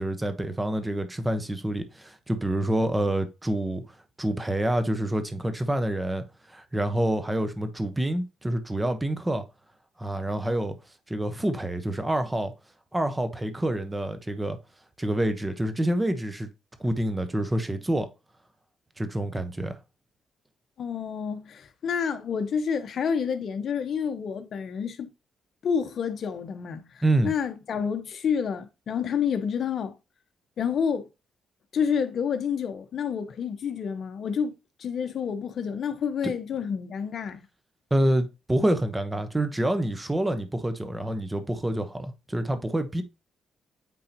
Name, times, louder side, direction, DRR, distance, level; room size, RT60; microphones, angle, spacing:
voice 1, 0.0-3.8 4.2-6.2 6.5-9.4 10.0-10.8 11.1-12.5 12.9-14.6 15.0-16.5 16.8-18.1 19.0-19.8 27.0-27.3 36.2-36.3 37.9-43.0, right 1 dB, 15° right, 1.1 m, -27 dB
voice 2, 20.8-25.1 25.6-29.9 30.6-31.1 31.7-34.5 34.8-37.4, left 7 dB, 60° left, 1.0 m, -29 dB
8.9 x 3.8 x 2.9 m
cardioid pair, 100°, 0 cm